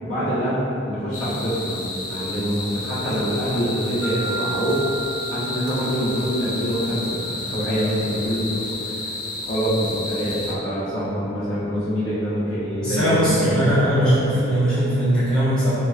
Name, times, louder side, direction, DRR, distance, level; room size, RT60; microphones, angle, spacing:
voice 1, 0.0-4.8 5.3-9.1 9.4-13.7 14.0-14.1, equal, 75° left, -11 dB, 1.0 m, -25 dB
sound 1, 1.1-10.5, left 2 dB, 40° left, 0.3 m, -32 dB
sound 2, 4.0-8.0, right 7 dB, 35° right, 1.1 m, -36 dB
voice 2, 12.8-15.7, equal, 5° left, -15 dB, 1.0 m, -19 dB
4.0 x 2.2 x 2.4 m, 2.8 s
head